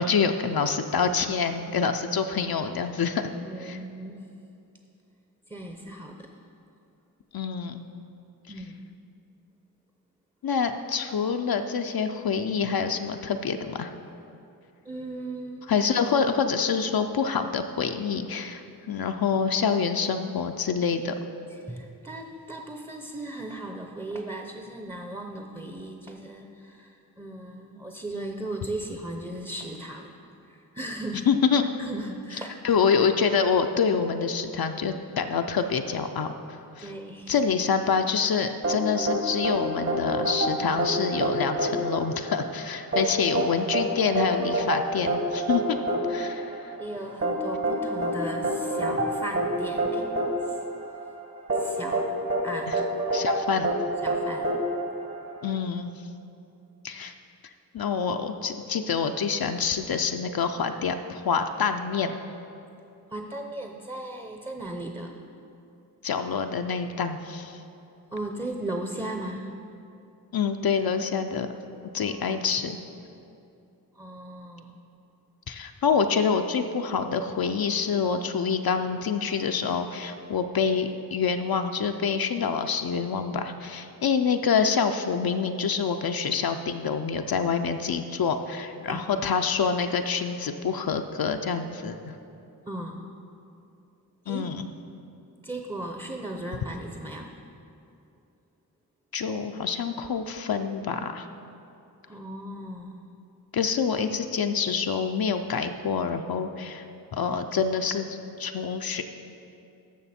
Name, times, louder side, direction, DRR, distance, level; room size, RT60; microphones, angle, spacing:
voice 1, 0.0-3.2 3.6-3.8 7.3-7.8 10.4-13.9 15.7-21.2 31.3-31.6 32.6-36.3 36.8-36.9 37.3-45.6 46.1-46.7 52.7-52.8 53.1-53.7 55.4-55.9 56.8-57.1 57.7-62.2 66.0-67.6 70.3-71.5 71.9-72.8 75.5-92.0 94.3-94.7 99.1-101.3 103.5-106.8 107.1-109.0, left 6 dB, 70° left, 6 dB, 0.5 m, -26 dB
voice 2, 3.4-4.3 5.5-6.3 8.5-8.8 14.8-15.8 21.5-30.2 30.5-31.3 31.8-32.6 36.8-37.5 45.9-46.1 46.8-50.1 50.4-50.6 51.5-52.1 52.4-53.0 54.0-54.5 63.1-65.2 68.1-69.5 72.0-72.4 73.9-74.8 88.9-89.1 92.7-93.1 94.2-94.5 95.4-97.4 102.1-103.0, right 1 dB, 15° right, 3 dB, 0.6 m, -37 dB
sound 1, 38.6-55.5, right 1 dB, 40° right, 1.1 m, -28 dB
14.0 x 6.0 x 4.2 m, 2.7 s
wide cardioid pair, 65°, 37 cm